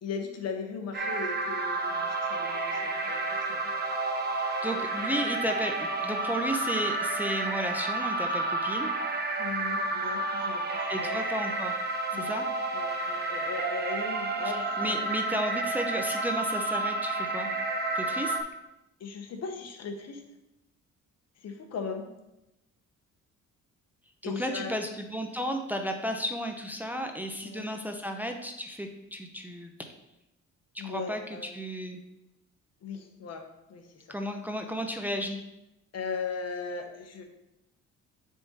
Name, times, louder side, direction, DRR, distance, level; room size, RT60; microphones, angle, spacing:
voice 1, 0.0-3.7 9.4-11.2 12.1-12.3 12.7-15.0 19.0-20.2 21.4-22.1 24.2-24.8 27.4-27.7 30.8-31.5 32.8-33.4 33.7-34.1 35.9-37.2, left 5 dB, 60° left, 4 dB, 1.0 m, -38 dB
sound 1, 0.9-18.4, right 2 dB, 35° right, 0.8 m, -30 dB
voice 2, 4.4-8.9 10.9-11.8 12.1-12.5 14.8-17.5 17.9-18.4 24.2-29.7 30.7-32.0 34.1-35.4, equal, 5° right, 4 dB, 0.6 m, -33 dB
6.8 x 3.8 x 4.1 m, 0.92 s
cardioid pair, 90°, 30 cm